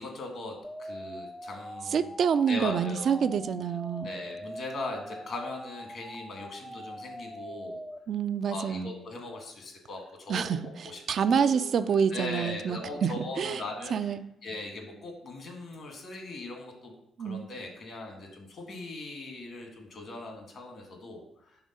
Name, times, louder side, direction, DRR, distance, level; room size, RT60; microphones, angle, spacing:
voice 1, 0.0-2.0 2.5-3.2 4.0-7.8 8.5-10.4 10.8-11.0 11.3-11.7 12.1-14.1 14.4-16.9 17.2-21.6, left 2 dB, 60° left, 2 dB, 1.5 m, -40 dB
sound 1, 0.6-8.0, equal, ahead, 0.5 m, -42 dB
voice 2, 1.9-4.1 8.1-8.9 10.3-13.6 13.9-14.2 17.2-17.5, right 7 dB, 65° right, 11 dB, 0.3 m, -27 dB
5.0 x 3.5 x 5.3 m, 0.80 s
supercardioid pair, 55°, 0 cm